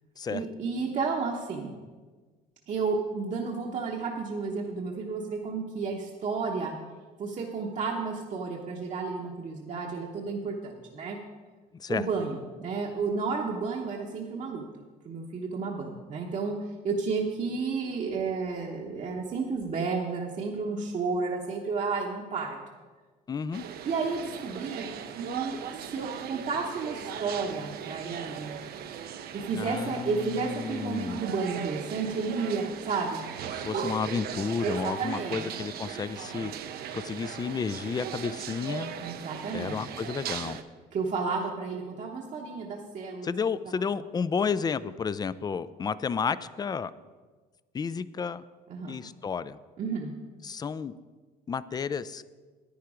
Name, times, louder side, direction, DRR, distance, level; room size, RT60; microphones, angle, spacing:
voice 1, 0.3-1.7 2.7-6.7 7.2-11.2 11.9-16.5 16.8-22.6 23.8-24.8 25.2-28.5 29.3-33.2 33.7-33.8 34.6-35.4 39.0-39.9 40.9-43.3 48.7-49.0 49.8-50.1, right 4 dB, 45° right, 0 dB, 1.1 m, -32 dB
voice 2, 23.3-23.6 29.5-31.2 33.5-36.5 36.9-38.9 39.5-40.6 43.2-46.9 47.7-48.4 48.9-49.6 50.4-50.9 51.5-52.3, left 6 dB, 25° left, 16 dB, 0.4 m, -32 dB
sound 1, 23.5-40.6, right 8 dB, 70° right, 0.8 m, -38 dB
10.5 x 9.4 x 5.0 m, 1.4 s
cardioid pair, 110°, 17 cm